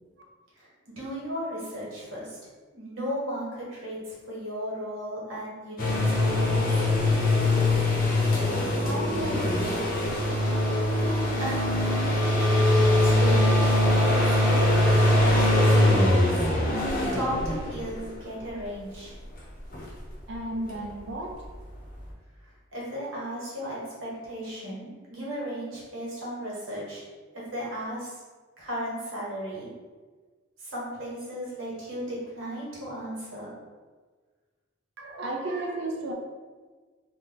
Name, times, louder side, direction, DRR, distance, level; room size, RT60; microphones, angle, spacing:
voice 1, 1.0-2.4 2.7-6.7 11.4-12.1 12.5-13.6 14.0-16.3 17.1-19.1 22.7-27.0 27.5-28.2 28.6-29.7 30.6-33.5, equal, 80° right, -6 dB, 1.3 m, -35 dB
sound 1, 5.8-18.1 19.7-19.8, left 1 dB, 45° left, 0.7 m, -22 dB
voice 2, 8.8-10.6 20.3-21.4 35.0-36.1, right 1 dB, 60° right, 1 dB, 0.5 m, -34 dB
2.9 x 2.2 x 3.8 m, 1.4 s
head